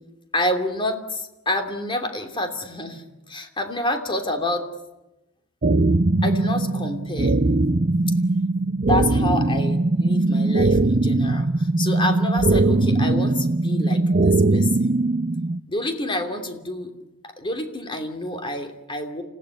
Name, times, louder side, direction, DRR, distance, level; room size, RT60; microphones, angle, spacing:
voice 1, 0.3-4.7 6.2-7.4 8.8-15.0 15.7-16.9 17.2-19.2, left 1 dB, 25° left, 5 dB, 2.9 m, -28 dB
sound 1, 5.6-15.6, right 2 dB, 40° right, 0.8 m, -20 dB
29.0 x 16.5 x 9.7 m, 0.99 s
head